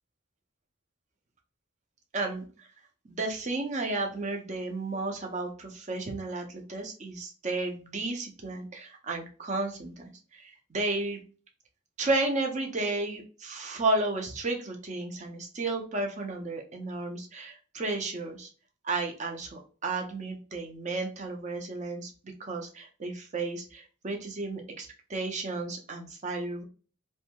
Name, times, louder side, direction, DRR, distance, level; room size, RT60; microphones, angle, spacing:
voice 1, 2.1-2.5 3.0-9.9 10.3-11.2 12.0-18.5 18.8-22.1 22.4-26.6, right 2 dB, 35° right, 2 dB, 0.5 m, -33 dB
2.6 x 2.2 x 2.8 m, 0.38 s
head